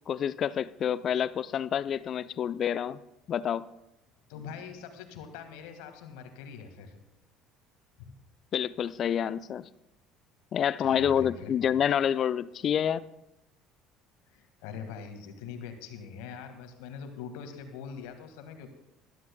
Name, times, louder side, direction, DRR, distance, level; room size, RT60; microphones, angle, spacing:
voice 1, 0.1-3.0 3.3-3.7 8.5-9.7 10.5-13.0, left 9 dB, 45° left, 16 dB, 0.5 m, -28 dB
voice 2, 4.3-7.0 8.0-8.1 10.8-11.8 14.3-18.7, left 6 dB, 70° left, 6 dB, 1.9 m, -43 dB
21.0 x 13.0 x 2.3 m, 0.89 s
figure-of-eight pair, 60°, 0 cm